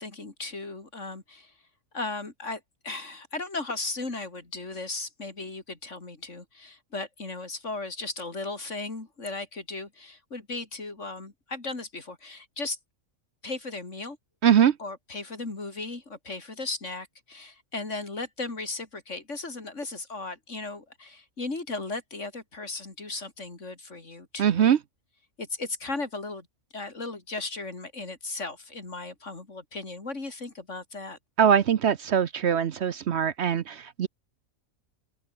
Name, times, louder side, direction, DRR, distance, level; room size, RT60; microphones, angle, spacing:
voice 1, 0.0-1.5 1.9-12.8 13.4-14.2 14.8-24.7 25.4-26.5 26.7-31.2, left 3 dB, 60° left, 3.9 m, -36 dB
voice 2, 14.4-14.8 24.4-24.8 31.4-34.1, right 8 dB, 60° right, 1.0 m, -22 dB
omnidirectional pair, 1.4 m